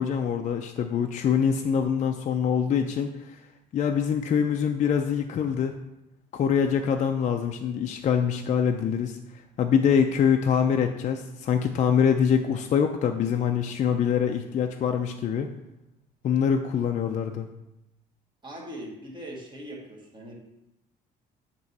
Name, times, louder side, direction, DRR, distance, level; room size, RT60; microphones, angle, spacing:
voice 1, 0.0-3.4 3.7-5.8 6.3-9.2 9.6-15.5 16.2-17.5, left 7 dB, 45° left, 4 dB, 0.5 m, -24 dB
voice 2, 18.4-20.4, right 1 dB, 25° right, -2 dB, 1.9 m, -40 dB
7.8 x 3.1 x 5.4 m, 0.89 s
cardioid pair, 110°, 17 cm